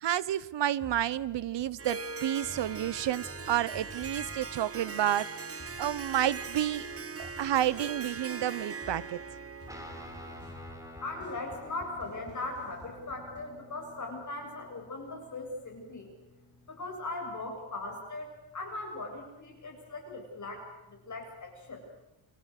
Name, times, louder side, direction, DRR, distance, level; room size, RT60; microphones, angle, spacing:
voice 1, 0.0-6.9 7.4-9.2, right 12 dB, 65° right, 19 dB, 0.9 m, -30 dB
sound 1, 0.8-13.6, left 2 dB, 20° left, 4.5 m, -52 dB
Harp, 1.8-10.5, right 5 dB, 30° right, 1.1 m, -41 dB
Guitar, 9.7-17.3, equal, 5° right, 3.6 m, -51 dB
voice 2, 11.0-16.1 16.7-21.9, left 2 dB, 40° left, 1 dB, 7.8 m, -39 dB
30.0 x 24.5 x 6.6 m, 0.93 s
wide cardioid pair, 155°, 47 cm